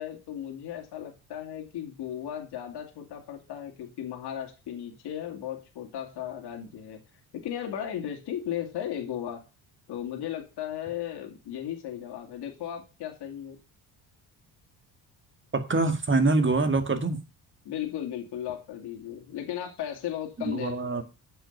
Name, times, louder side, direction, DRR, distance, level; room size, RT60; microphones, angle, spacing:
voice 1, 0.0-7.0 7.4-9.4 9.9-13.6 17.6-21.0, left 10 dB, 70° left, 2 dB, 2.5 m, -36 dB
voice 2, 15.5-17.2 20.4-21.0, right 3 dB, 30° right, 7 dB, 2.0 m, -25 dB
8.5 x 5.6 x 6.7 m, 0.30 s
supercardioid pair, 80°, 41 cm